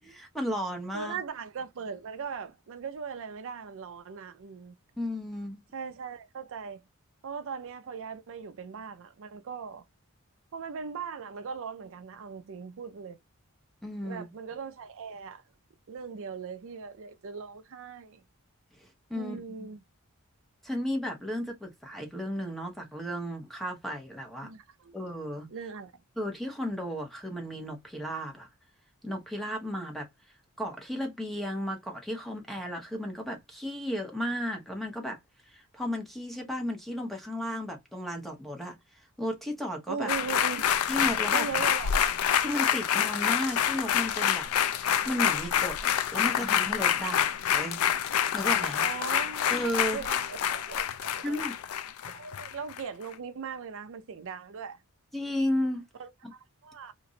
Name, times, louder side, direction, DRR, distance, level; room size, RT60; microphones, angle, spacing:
voice 1, 0.0-1.2 5.0-5.6 13.8-14.3 18.8-19.4 20.6-24.5 24.9-25.5 26.2-28.5 29.0-30.1 30.6-35.2 35.5-38.8 39.2-40.1 40.9-41.5 42.4-44.5 45.0-48.0 48.3-48.8 49.5-50.0 51.2-51.5 55.1-55.8 56.2-56.3, equal, ahead, 0.9 m, -34 dB
voice 2, 0.9-4.7 5.7-6.8 7.2-9.8 10.5-13.2 14.0-15.4 15.9-18.2 19.1-19.8 24.4-25.0 25.5-25.9 39.9-40.6 41.3-42.1 48.8-51.5 52.1-54.8 56.0-56.9, right 6 dB, 60° right, 0.5 m, -39 dB
sound 1, 40.1-52.8 53.1-53.2, left 9 dB, 70° left, 0.4 m, -27 dB
3.0 x 2.5 x 3.9 m
head